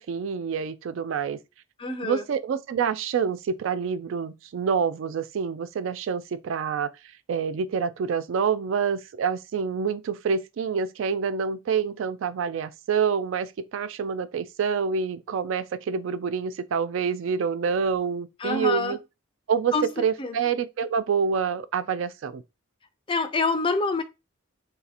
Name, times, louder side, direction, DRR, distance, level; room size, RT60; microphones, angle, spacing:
voice 1, 0.0-1.4 2.0-6.9 7.3-19.0 19.5-22.4, right 6 dB, 65° right, 0.3 m, -27 dB
voice 2, 1.8-2.2 18.4-19.0 19.7-19.9 20.2-20.4 23.1-24.0, left 3 dB, 25° left, 0.4 m, -26 dB
2.7 x 2.5 x 4.0 m
head